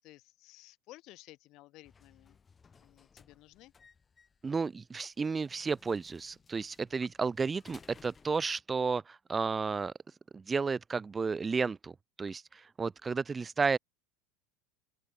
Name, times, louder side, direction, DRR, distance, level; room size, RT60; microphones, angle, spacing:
voice 1, 0.0-2.4 2.8-3.7, left 18 dB, 50° left, 1.6 m, -55 dB
sound 1, 1.8-8.4, left 5 dB, 20° left, 5.3 m, -61 dB
voice 2, 4.4-9.9 10.3-11.9 12.2-13.8, right 4 dB, 15° right, 0.5 m, -32 dB
supercardioid pair, 130°, 0 cm